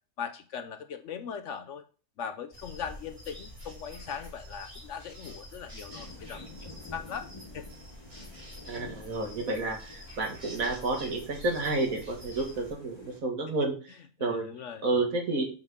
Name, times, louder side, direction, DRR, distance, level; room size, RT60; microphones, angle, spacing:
voice 1, 0.2-1.9 2.2-7.7 14.2-14.8, left 7 dB, 65° left, 8 dB, 0.9 m, -40 dB
sound 1, 2.5-12.7, equal, 20° right, 3.1 m, -47 dB
sound 2, 5.9-13.2, left 2 dB, 20° left, 1.7 m, -51 dB
voice 2, 8.7-13.9 14.2-14.5 14.8-15.5, right 2 dB, 70° right, 3 dB, 2.0 m, -30 dB
8.0 x 4.3 x 5.2 m, 0.37 s
omnidirectional pair, 1.5 m